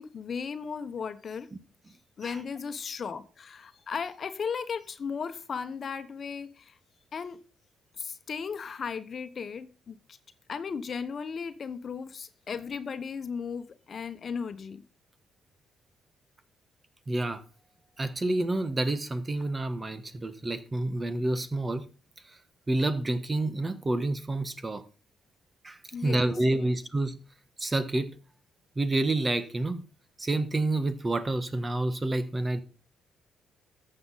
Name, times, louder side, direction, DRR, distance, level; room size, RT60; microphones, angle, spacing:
voice 1, 0.0-1.5 2.2-6.8 7.1-7.4 8.0-10.2 10.5-14.8 25.9-26.7, left 6 dB, 45° left, 1.2 m, -36 dB
voice 2, 17.1-17.4 18.0-21.9 22.7-24.8 25.6-27.2 27.6-28.1 28.8-29.8 30.2-32.6, right 2 dB, 25° right, 1.3 m, -28 dB
13.5 x 7.8 x 4.1 m
cardioid pair, 90°, 0 cm